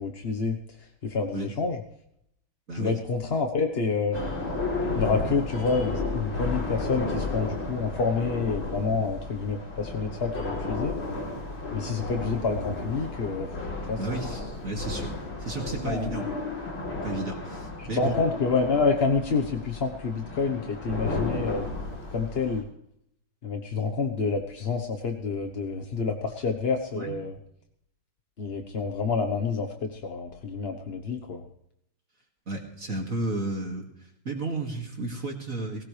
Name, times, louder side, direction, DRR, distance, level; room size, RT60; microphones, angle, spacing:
voice 1, 0.0-1.8 2.7-4.2 4.9-10.9 11.7-13.5 13.9-14.4 15.8-16.2 17.8-21.7 22.1-22.7 23.4-27.3 28.4-31.4, left 4 dB, 40° left, 4 dB, 1.1 m, -28 dB
voice 2, 2.7-3.0 14.0-16.3 17.0-18.2 26.9-27.2 32.5-33.9 34.2-35.8, right 2 dB, 40° right, 1 dB, 2.6 m, -33 dB
sound 1, 4.1-22.6, left 3 dB, 75° left, 4.0 m, -33 dB
19.5 x 18.0 x 3.3 m, 0.74 s
omnidirectional pair, 2.2 m